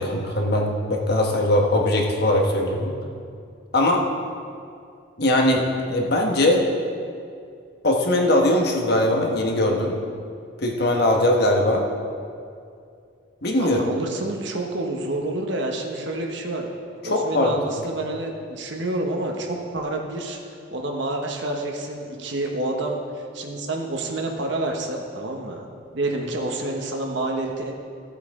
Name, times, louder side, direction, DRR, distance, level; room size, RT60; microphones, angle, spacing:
voice 1, 0.0-2.9 3.7-4.1 5.2-6.6 7.8-9.9 10.6-11.8 13.4-13.8 17.0-17.5, left 1 dB, 55° left, 1 dB, 1.3 m, -20 dB
voice 2, 13.6-16.7 17.0-25.6 25.9-27.7, right 2 dB, 65° right, 1 dB, 1.1 m, -28 dB
15.5 x 8.4 x 3.7 m, 2.4 s
head